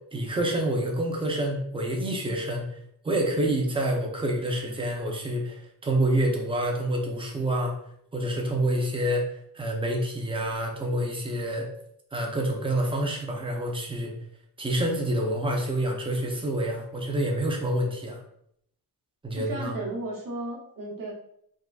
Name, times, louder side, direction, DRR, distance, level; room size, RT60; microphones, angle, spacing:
voice 1, 0.1-2.6 3.0-7.7 8.1-9.3 9.5-11.7 12.1-14.1 14.6-18.2 19.2-19.8, right 1 dB, 15° right, 0 dB, 0.4 m, -27 dB
voice 2, 19.4-21.1, right 2 dB, 50° right, -2 dB, 0.9 m, -34 dB
3.5 x 2.4 x 2.3 m, 0.71 s
wide cardioid pair, 160°, 40 cm